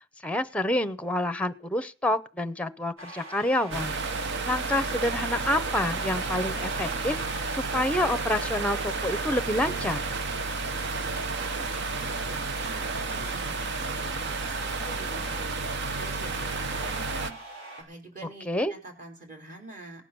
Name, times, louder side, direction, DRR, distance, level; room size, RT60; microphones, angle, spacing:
voice 1, 0.2-4.0 4.4-10.0 18.5-18.7, left 1 dB, 5° left, 11 dB, 0.7 m, -28 dB
sound 1, 3.0-17.8, right 2 dB, 80° right, 7.6 m, -43 dB
sound 2, 3.7-17.3, right 3 dB, 60° right, 0.9 m, -31 dB
voice 2, 11.2-20.0, right 2 dB, 40° right, 3 dB, 4.2 m, -46 dB
18.0 x 9.6 x 6.9 m, 0.41 s
head